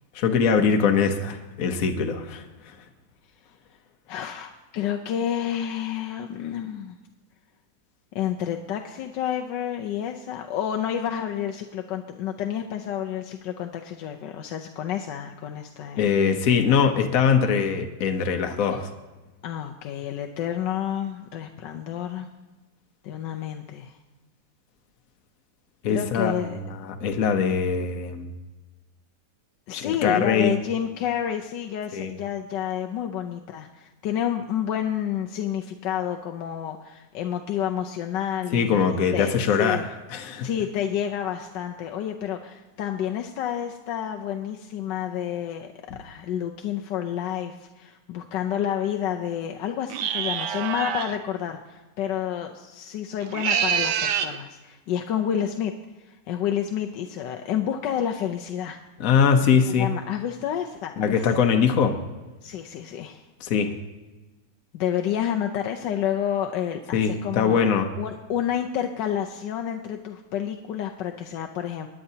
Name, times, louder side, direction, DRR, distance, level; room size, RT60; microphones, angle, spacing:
voice 1, 0.1-2.8 16.0-18.9 25.8-26.3 26.7-28.3 29.7-30.6 31.9-32.1 38.5-40.5 59.0-59.9 61.0-62.0 63.4-63.7 66.9-67.9, left 6 dB, 55° left, 5 dB, 1.2 m, -22 dB
voice 2, 4.1-7.0 8.1-16.1 19.4-22.3 23.0-24.0 25.9-26.6 29.7-39.8 40.4-45.7 46.0-55.7 56.0-58.8 59.7-61.2 62.4-63.2 64.7-67.6 68.0-71.9, left 9 dB, 85° left, 3 dB, 1.4 m, -29 dB
sound 1, 49.9-51.2 53.2-54.4, right 8 dB, 75° right, 1.3 m, -26 dB
21.0 x 9.9 x 2.8 m, 1.2 s
omnidirectional pair, 1.9 m